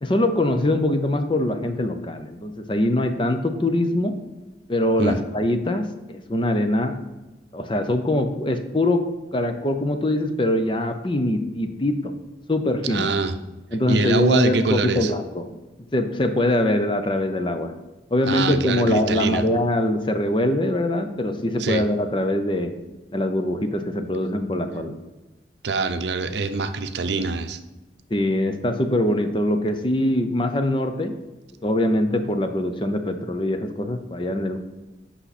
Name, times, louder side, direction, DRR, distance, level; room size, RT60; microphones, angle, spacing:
voice 1, 0.0-4.2 4.7-7.0 7.5-9.0 9.3-12.1 12.5-13.1 13.7-15.5 15.9-17.7 18.1-22.7 23.1-25.0 28.1-31.1 31.6-34.6, left 1 dB, 25° left, 7 dB, 0.6 m, -23 dB
voice 2, 12.9-13.3 13.9-15.1 18.3-19.4 21.6-21.8 25.6-27.6, right 4 dB, 75° right, 9 dB, 0.6 m, -24 dB
8.5 x 5.7 x 4.1 m, 1.1 s
head